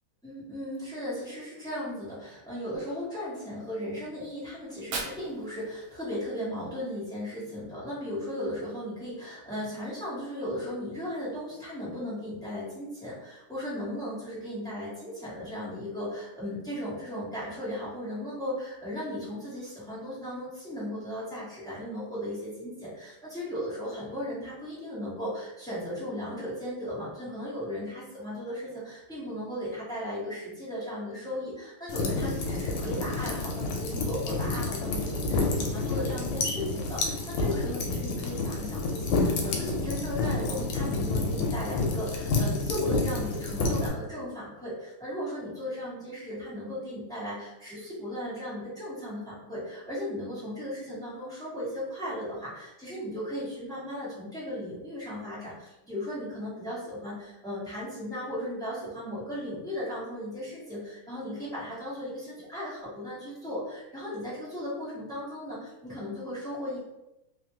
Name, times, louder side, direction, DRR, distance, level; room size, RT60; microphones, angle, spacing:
voice 1, 0.2-66.8, equal, 5° left, -10 dB, 0.9 m, -36 dB
Fire, 4.6-6.6, right 4 dB, 80° right, 1.5 m, -40 dB
sound 1, 31.9-43.9, left 3 dB, 85° left, 1.5 m, -29 dB
3.4 x 2.5 x 2.8 m, 0.92 s
omnidirectional pair, 2.3 m